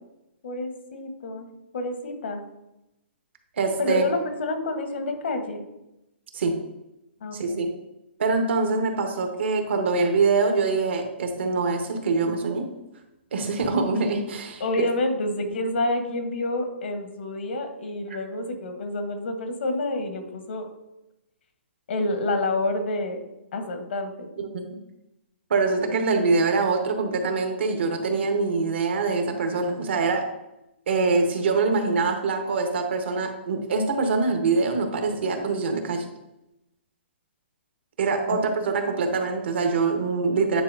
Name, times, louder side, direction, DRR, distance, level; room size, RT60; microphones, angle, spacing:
voice 1, 0.4-1.5 1.7-2.4 3.8-5.6 7.2-7.6 14.6-20.7 21.9-23.2 23.5-24.3, left 2 dB, 70° left, 6 dB, 1.3 m, -28 dB
voice 2, 3.6-4.0 6.3-6.6 7.3-7.7 8.2-12.7 13.3-14.9 24.4-24.7 25.5-30.2 30.9-36.0 38.0-40.6, right 4 dB, 70° right, 4 dB, 1.3 m, -24 dB
9.4 x 4.2 x 2.7 m, 0.91 s
hypercardioid pair, 155°, 6 cm